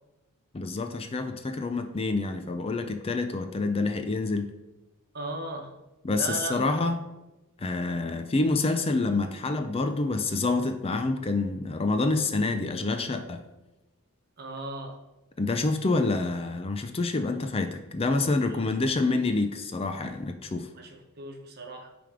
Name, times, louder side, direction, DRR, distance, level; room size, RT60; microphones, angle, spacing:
voice 1, 0.5-4.5 6.0-7.0 7.6-13.4 15.4-20.7, left 3 dB, 25° left, 7 dB, 0.5 m, -27 dB
voice 2, 5.1-5.7 6.2-6.8 14.4-15.0 18.4-18.7 20.7-21.9, right 2 dB, 45° right, 3 dB, 1.1 m, -37 dB
9.0 x 3.5 x 5.0 m, 0.99 s
head